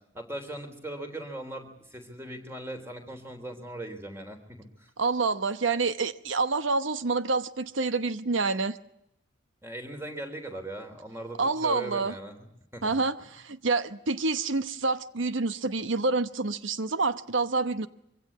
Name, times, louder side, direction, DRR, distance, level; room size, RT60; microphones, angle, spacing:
voice 1, 0.0-4.9 9.6-12.4 12.7-13.3, right 1 dB, 15° right, 6 dB, 3.4 m, -39 dB
voice 2, 5.0-8.8 11.4-12.1 12.8-17.9, right 3 dB, 85° right, 13 dB, 1.0 m, -27 dB
24.5 x 16.5 x 9.5 m, 0.79 s
head